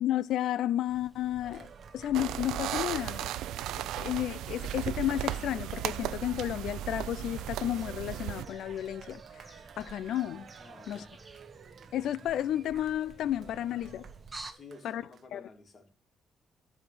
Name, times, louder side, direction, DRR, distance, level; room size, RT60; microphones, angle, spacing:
voice 1, 0.0-1.7 1.9-3.3 4.0-9.2 9.8-10.4 10.9-11.0 11.9-14.1 14.8-15.0 15.3-15.4, left 12 dB, 75° left, 0.5 m, -32 dB
sound 1, 0.9-14.5, right 3 dB, 25° right, 1.5 m, -51 dB
Cheering, 1.4-15.3, right 7 dB, 60° right, 1.0 m, -52 dB
sound 2, 2.1-8.5, right 12 dB, 85° right, 0.5 m, -36 dB
voice 2, 10.5-11.3 14.5-16.0, left 3 dB, 40° left, 3.2 m, -52 dB
13.0 x 4.9 x 8.7 m
cardioid pair, 90°, 0 cm